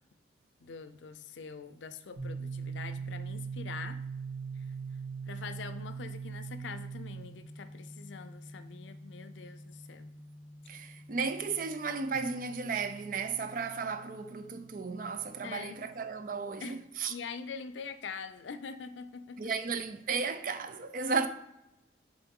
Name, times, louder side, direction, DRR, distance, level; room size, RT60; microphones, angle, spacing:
voice 1, 0.6-4.0 5.3-10.1 15.4-15.8 16.6-16.8 17.1-19.5, left 5 dB, 90° left, 0.5 m, -44 dB
sound 1, 2.2-15.8, right 5 dB, 85° right, 1.9 m, -43 dB
voice 2, 10.7-17.1 19.4-21.3, right 5 dB, 50° right, 0.5 m, -34 dB
6.9 x 3.9 x 3.7 m
head